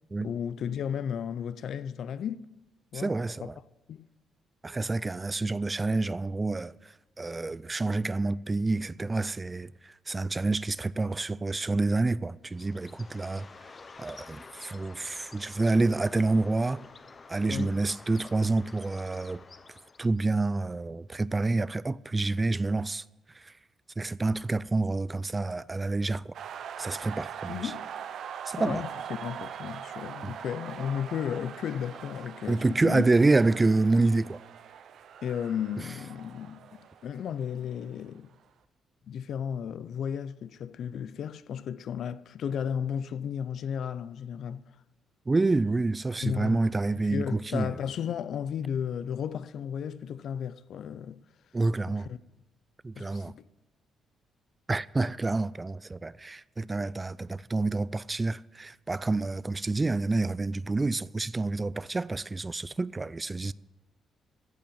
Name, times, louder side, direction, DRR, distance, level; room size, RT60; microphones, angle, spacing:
voice 1, 0.2-2.5 2.9-3.5 3.9-4.1 17.5-17.8 27.5-27.8 28.6-33.0 35.2-38.3 39.1-44.6 46.2-46.6 47.0-51.2 51.9-52.2 52.9-53.4, left 8 dB, 65° left, 0.5 m, -34 dB
voice 2, 2.9-3.5 4.6-6.7 7.2-13.5 14.0-16.9 17.3-19.4 20.0-23.0 23.4-23.5 24.0-26.3 26.8-27.7 28.5-28.8 30.2-30.3 32.5-34.4 45.3-47.7 51.5-52.1 52.8-53.3 54.7-63.5, right 3 dB, 20° right, 0.3 m, -28 dB
Bird, 12.5-20.2, left 4 dB, 35° left, 0.8 m, -50 dB
sound 1, 26.3-38.0, right 8 dB, 70° right, 0.7 m, -42 dB
15.5 x 5.6 x 9.1 m
cardioid pair, 90°, 0 cm